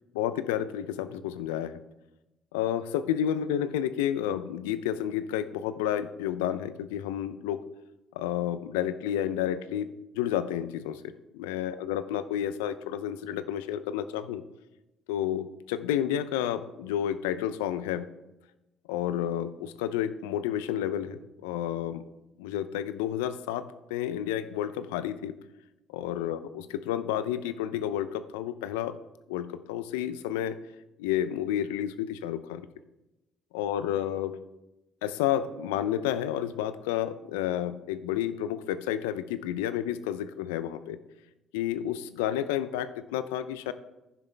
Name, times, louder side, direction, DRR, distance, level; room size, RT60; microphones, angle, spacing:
voice 1, 0.1-1.7 2.5-7.6 8.1-9.9 10.1-11.1 11.4-14.4 15.1-18.1 18.9-22.0 22.4-25.3 25.9-29.0 29.3-30.6 31.0-32.6 33.5-34.4 35.0-41.0 41.5-43.7, left 11 dB, 85° left, 13 dB, 0.6 m, -30 dB
15.0 x 10.5 x 3.4 m, 0.97 s
hypercardioid pair, 60°, 0 cm